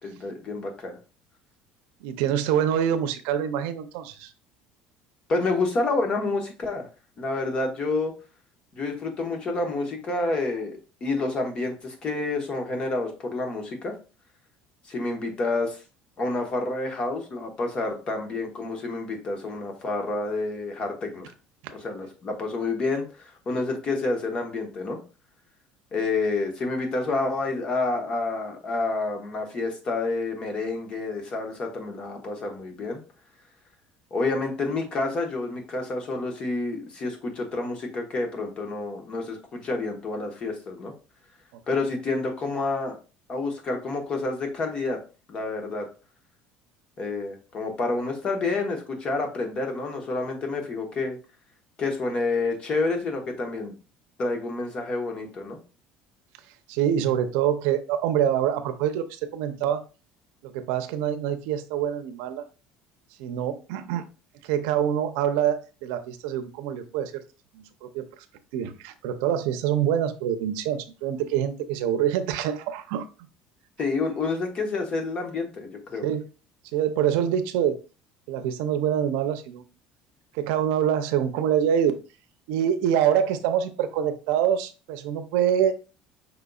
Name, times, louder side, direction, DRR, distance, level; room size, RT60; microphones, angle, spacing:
voice 1, 0.0-1.0 5.3-6.9 7.2-8.1 8.7-13.9 14.9-15.8 16.2-21.3 21.7-25.0 25.9-33.0 34.1-40.9 41.7-43.0 43.3-45.0 45.3-45.9 47.0-51.2 51.8-53.7 54.2-55.6 73.8-76.1, left 3 dB, 35° left, 3 dB, 1.2 m, -29 dB
voice 2, 2.0-4.3 56.7-59.8 60.4-62.4 63.2-64.1 64.4-67.2 67.5-68.0 68.5-73.0 76.0-76.2 76.7-77.8 78.3-79.6 80.3-81.9 82.5-85.7, right 9 dB, 90° right, 9 dB, 0.6 m, -25 dB
5.4 x 3.9 x 2.3 m, 0.33 s
cardioid pair, 145°, 3 cm